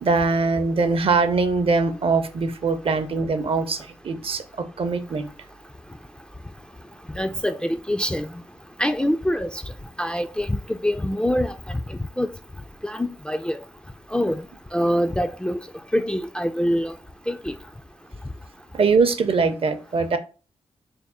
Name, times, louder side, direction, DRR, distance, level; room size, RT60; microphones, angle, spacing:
voice 1, 0.0-5.3 18.7-20.2, right 4 dB, 50° right, 0.6 m, -22 dB
voice 2, 7.1-8.3 8.8-9.6 10.0-11.8 12.2-12.3 12.8-13.6 14.1-14.4 14.7-15.6 15.9-16.9 17.3-17.5, equal, 10° left, 0.3 m, -24 dB
3.5 x 2.1 x 4.1 m
cardioid pair, 50°, 12 cm